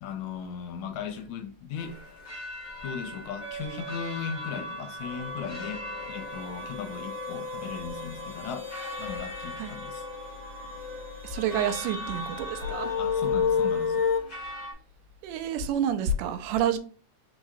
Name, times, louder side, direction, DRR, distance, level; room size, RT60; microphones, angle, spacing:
voice 1, 0.0-2.0 2.8-8.7 9.0-10.1 13.0-14.1, left 7 dB, 80° left, 1.8 m, -37 dB
sound 1, 1.8-14.7, left 1 dB, 25° left, 1.4 m, -42 dB
sound 2, 3.4-14.2, left 5 dB, 55° right, 0.8 m, -33 dB
voice 2, 11.2-12.9 15.2-16.8, right 7 dB, 85° right, 2.2 m, -28 dB
4.7 x 4.0 x 2.6 m
omnidirectional pair, 3.6 m